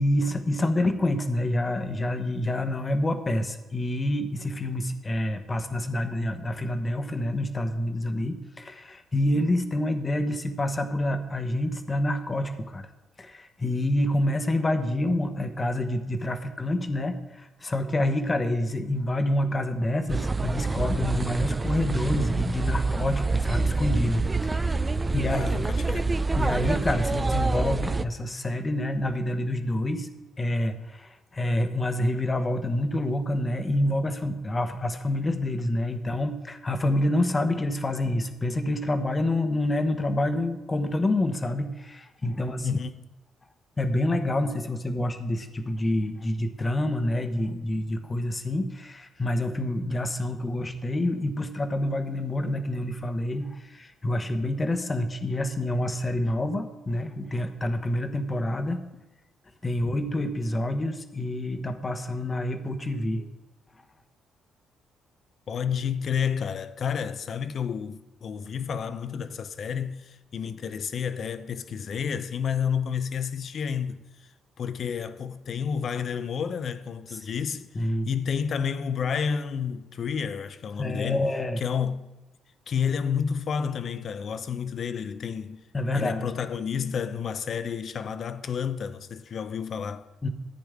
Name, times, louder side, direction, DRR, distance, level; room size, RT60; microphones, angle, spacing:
voice 1, 0.0-12.9 13.2-24.8 25.1-25.5 26.4-30.1 30.4-42.8 43.8-58.8 59.6-63.3 77.7-78.1 80.8-81.6 85.7-86.2 90.2-90.3, left 1 dB, 25° left, 1.1 m, -27 dB
sound 1, 20.1-28.0, right 3 dB, 20° right, 0.4 m, -26 dB
voice 2, 25.2-26.2 33.8-34.0 42.6-42.9 65.5-74.0 74.6-77.7 78.1-82.1 82.7-85.6 85.9-90.1, left 7 dB, 55° left, 0.7 m, -30 dB
14.0 x 9.0 x 3.7 m
cardioid pair, 90°, 0 cm